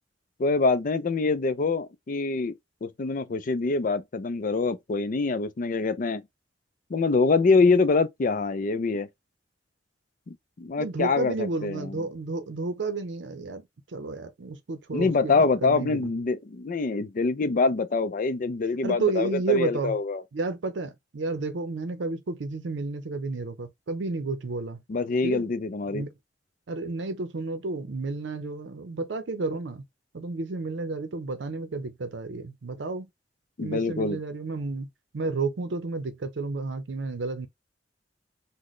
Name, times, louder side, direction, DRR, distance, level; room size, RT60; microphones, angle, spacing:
voice 1, 0.4-2.5 2.8-6.2 6.9-9.1 10.3-12.1 14.9-20.2 24.9-26.0 33.6-34.2, left 4 dB, 50° left, 0.4 m, -25 dB
voice 2, 10.8-13.6 13.9-16.1 18.8-20.0 20.3-24.8 25.2-25.4 25.9-26.1 26.7-29.8 30.1-33.1 33.6-34.9 35.1-37.5, right 3 dB, 80° right, 0.6 m, -31 dB
4.0 x 2.1 x 3.1 m
head